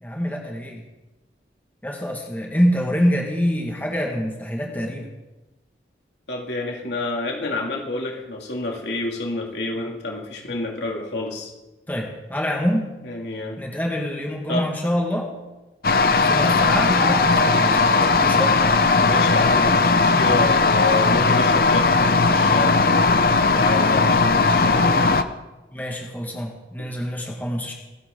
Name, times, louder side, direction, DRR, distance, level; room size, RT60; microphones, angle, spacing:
voice 1, 0.0-0.8 1.8-5.1 11.9-12.9 13.6-15.3 16.2-17.8 18.2-18.6 25.7-27.7, equal, 10° left, 0 dB, 1.9 m, -25 dB
voice 2, 6.3-11.5 13.0-13.6 14.5-14.7 19.0-25.0 26.8-26.9, left 2 dB, 75° left, 0 dB, 2.9 m, -29 dB
sound 1, 15.8-25.2, left 3 dB, 55° left, 0.8 m, -18 dB
sound 2, 16.9-21.5, right 2 dB, 20° right, 3.3 m, -37 dB
26.0 x 11.0 x 3.9 m, 1.1 s
head